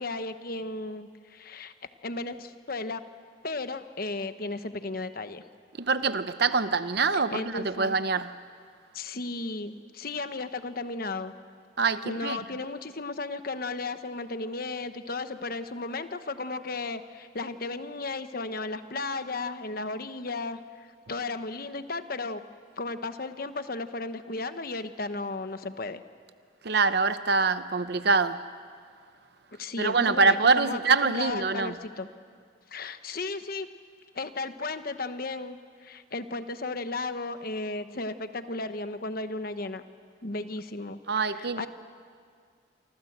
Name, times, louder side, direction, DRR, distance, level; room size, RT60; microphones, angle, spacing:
voice 1, 0.0-1.7 2.0-3.0 3.4-5.4 7.1-8.0 8.9-11.3 12.0-22.4 22.8-26.0 29.5-32.1 32.7-33.7 34.1-39.8 40.2-41.0 41.3-41.7, left 3 dB, 45° left, 1.1 m, -35 dB
voice 2, 5.8-8.3 11.8-12.4 26.6-28.4 29.8-31.7 41.1-41.7, right 4 dB, 55° right, 0.8 m, -25 dB
27.5 x 25.0 x 8.0 m
head